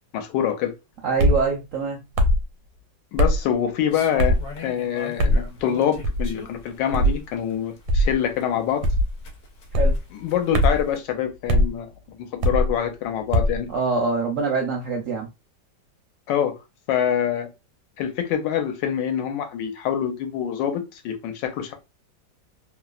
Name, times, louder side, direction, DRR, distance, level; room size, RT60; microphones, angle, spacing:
voice 1, 0.1-0.7 3.1-8.8 10.2-13.7 16.3-16.5 16.9-17.5 18.0-21.7, left 9 dB, 80° left, 1.2 m, -25 dB
voice 2, 1.0-2.0 9.7-10.0 13.7-15.3, right 4 dB, 70° right, 0.7 m, -24 dB
sound 1, 1.2-1.4 2.2-2.4 3.2-3.4 4.2-4.5 5.2-5.4 6.0-6.3 6.9-7.2 7.9-8.1 8.8-9.1 9.7-10.0 10.5-10.8 11.5-11.7 12.4-12.7 13.3-13.6, equal, 85° right, 1.3 m, -19 dB
sound 2, 3.9-11.0, left 3 dB, 55° left, 1.0 m, -42 dB
3.1 x 2.0 x 2.3 m
omnidirectional pair, 2.0 m